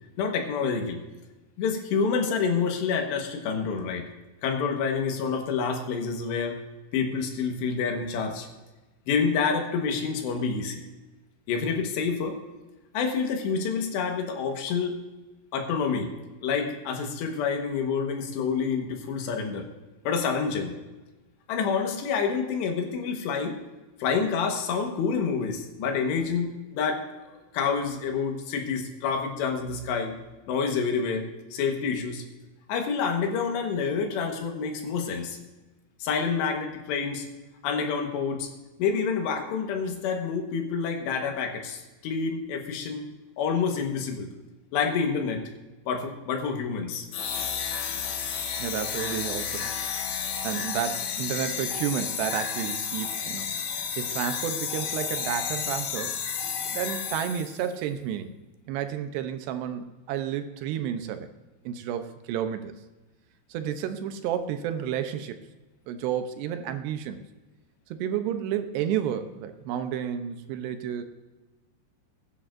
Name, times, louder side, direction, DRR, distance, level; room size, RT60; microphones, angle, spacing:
voice 1, 0.2-1.0 1.6-4.1 4.4-6.6 6.9-8.5 9.1-10.8 11.5-12.4 12.9-15.0 15.5-16.1 16.4-19.7 20.1-20.8 21.5-23.6 24.0-27.0 27.5-30.1 30.5-32.2 32.7-35.4 36.0-37.3 37.6-38.5 38.8-43.1 43.4-44.3 44.7-45.4 45.9-47.1, left 5 dB, 85° left, 3 dB, 3.5 m, -28 dB
sound 1, 47.1-57.7, left 7 dB, 65° left, 2.3 m, -31 dB
voice 2, 48.6-49.8 50.4-53.5 54.0-56.2 56.7-58.3 58.7-61.3 61.7-62.7 63.5-65.4 65.9-67.2 67.9-71.0, right 9 dB, 80° right, 9 dB, 2.8 m, -31 dB
21.0 x 9.9 x 2.6 m, 1.2 s
omnidirectional pair, 4.9 m